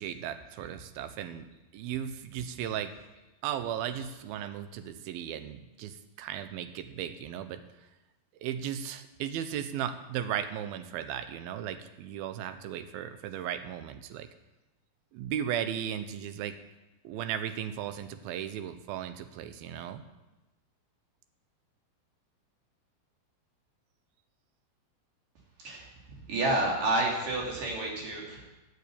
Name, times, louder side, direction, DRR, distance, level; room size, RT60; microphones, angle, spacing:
voice 1, 0.0-1.5 1.7-2.9 3.4-7.9 8.4-14.3 15.1-16.6 17.0-20.0, right 9 dB, 80° right, 10 dB, 2.6 m, -36 dB
voice 2, 26.3-28.5, right 2 dB, 60° right, -2 dB, 4.4 m, -29 dB
12.0 x 8.2 x 8.4 m, 1.0 s
omnidirectional pair, 4.4 m